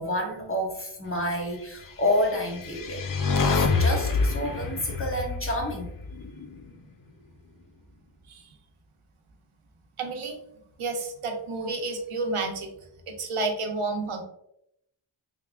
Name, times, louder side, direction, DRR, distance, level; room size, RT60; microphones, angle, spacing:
voice 1, 0.0-3.0 3.4-5.9, left 1 dB, 25° left, 1 dB, 0.9 m, -29 dB
sound 1, 2.3-6.6, left 4 dB, 45° left, 0.5 m, -27 dB
voice 2, 10.0-10.4 10.8-12.7 13.1-14.2, right 3 dB, 85° right, 3 dB, 0.8 m, -30 dB
3.5 x 3.4 x 2.3 m, 0.77 s
wide cardioid pair, 60°, 49 cm